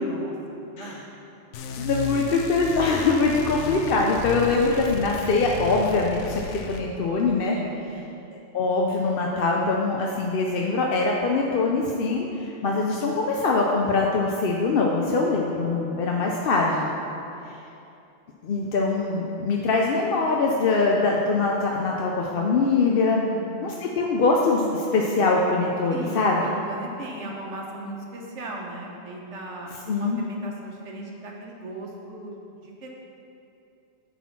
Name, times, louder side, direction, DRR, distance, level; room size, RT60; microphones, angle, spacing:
voice 1, 0.0-1.1 1.8-1.9 7.5-8.0 17.0-17.4 23.0-23.6 25.9-29.7 30.0-32.9, right 2 dB, 80° right, -1 dB, 1.4 m, -38 dB
sound 1, 1.5-6.8, left 6 dB, 85° left, 0.9 m, -34 dB
voice 2, 1.8-6.4 6.7-7.6 8.5-16.9 18.4-23.2 23.6-26.4 29.9-30.2, left 3 dB, 60° left, -1 dB, 0.8 m, -23 dB
9.6 x 4.3 x 5.8 m, 2.8 s
omnidirectional pair, 1.2 m